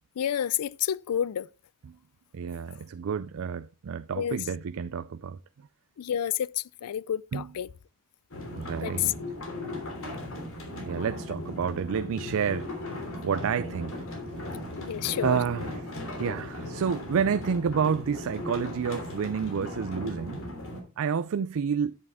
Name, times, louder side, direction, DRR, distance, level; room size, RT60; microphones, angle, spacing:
voice 1, 0.2-1.5 4.2-4.4 6.0-7.7 8.8-9.1 14.8-15.4, left 10 dB, 85° left, 0.4 m, -29 dB
voice 2, 2.3-5.4 7.3-7.5 8.6-9.1 10.7-12.7 13.2-14.0 15.2-20.4 21.0-22.0, right 6 dB, 65° right, 0.4 m, -29 dB
sound 1, 8.3-20.8, left 1 dB, 65° left, 3.0 m, -37 dB
9.4 x 8.5 x 3.5 m
head